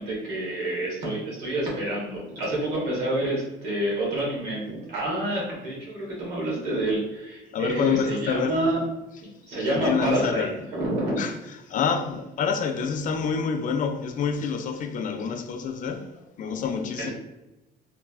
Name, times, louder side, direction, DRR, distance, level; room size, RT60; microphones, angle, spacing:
voice 1, 0.0-8.8 9.5-11.2 17.0-17.1, right 1 dB, 85° right, 1.2 m, -28 dB
voice 2, 7.5-8.6 9.6-10.5 11.2-11.3 11.7-16.1 16.4-17.1, left 6 dB, 50° left, 0.4 m, -27 dB
3.0 x 2.3 x 2.4 m
cardioid pair, 110°, 17 cm